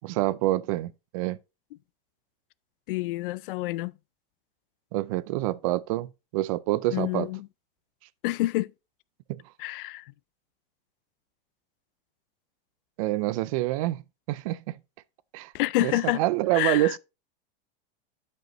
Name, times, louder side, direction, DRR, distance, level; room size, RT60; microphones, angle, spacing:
voice 1, 0.0-1.4 4.9-7.3 9.3-9.4 13.0-14.0 14.3-14.8 15.3-15.5 15.8-17.0, right 16 dB, 40° right, 0.4 m, -27 dB
voice 2, 2.9-3.9 6.9-7.5 8.2-8.7 9.6-10.0 15.5-16.2 16.5-16.9, left 18 dB, 65° left, 0.4 m, -28 dB
12.0 x 5.3 x 3.0 m
supercardioid pair, 160°, 29 cm